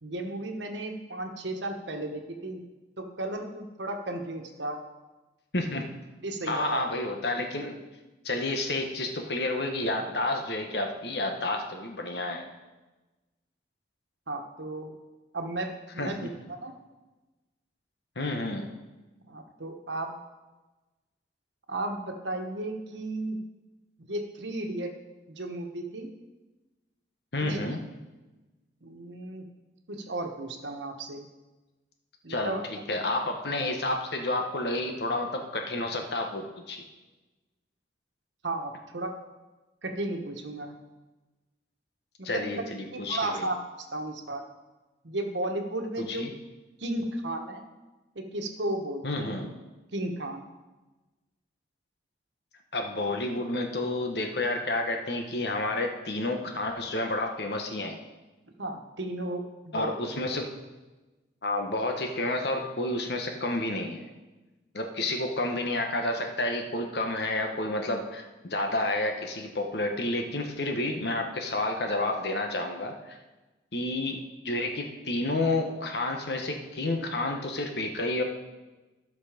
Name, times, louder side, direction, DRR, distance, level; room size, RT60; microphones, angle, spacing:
voice 1, 0.0-2.6 3.0-4.8 6.2-6.8 14.3-14.9 15.3-16.3 16.6-16.7 19.2-20.2 21.7-23.4 24.0-24.9 25.3-26.1 27.4-27.7 28.8-29.4 29.9-31.3 32.2-32.7 38.4-39.1 39.8-40.7 42.2-42.4 42.9-43.6 43.9-44.4 45.0-46.2 46.8-47.6 48.1-49.3 49.9-50.4 58.6-59.9, right 2 dB, 80° right, 4 dB, 1.3 m, -34 dB
voice 2, 5.5-5.9 6.5-7.8 8.2-12.5 16.0-16.3 18.1-18.7 27.3-27.8 32.3-36.8 42.2-43.5 46.0-46.3 49.0-49.5 52.7-58.0 59.7-60.5 61.4-64.1 64.7-73.2 73.7-78.2, left 2 dB, 65° left, 3 dB, 1.3 m, -30 dB
13.5 x 6.1 x 5.1 m, 1.1 s
head